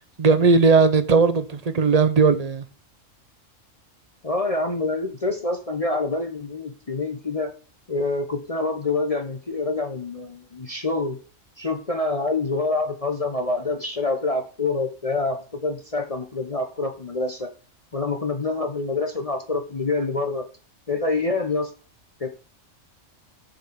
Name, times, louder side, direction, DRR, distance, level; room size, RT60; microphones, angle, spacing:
voice 1, 0.2-2.6, right 4 dB, 35° right, 0.8 m, -17 dB
voice 2, 4.2-7.5 7.9-11.2 11.6-17.5 17.9-20.5 20.9-21.7 22.2-22.3, left 3 dB, 30° left, 1.0 m, -26 dB
7.5 x 5.3 x 6.7 m
omnidirectional pair, 1.3 m